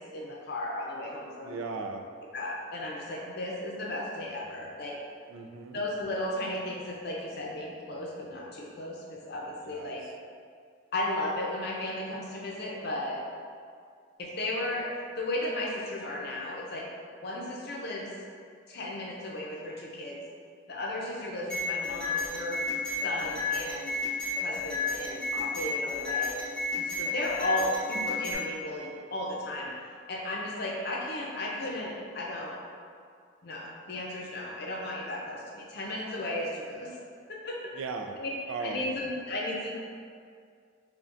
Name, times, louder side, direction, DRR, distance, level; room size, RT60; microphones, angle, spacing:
voice 1, 0.0-1.6 2.3-5.0 5.7-10.0 10.9-13.2 14.2-16.8 17.2-18.1 18.7-20.2 20.7-22.6 23.0-23.9 24.4-26.3 26.8-29.7 30.1-32.6 33.4-37.0 37.3-37.6 38.2-38.3 38.6-39.7, left 1 dB, 55° left, -3 dB, 0.6 m, -35 dB
voice 2, 1.4-2.0 5.3-5.9 9.7-10.0 37.8-38.2 38.5-38.9, right 4 dB, 80° right, 5 dB, 0.3 m, -37 dB
sound 1, 21.5-28.3, left 3 dB, 5° left, 1.0 m, -32 dB
4.8 x 2.2 x 2.5 m, 2.2 s
head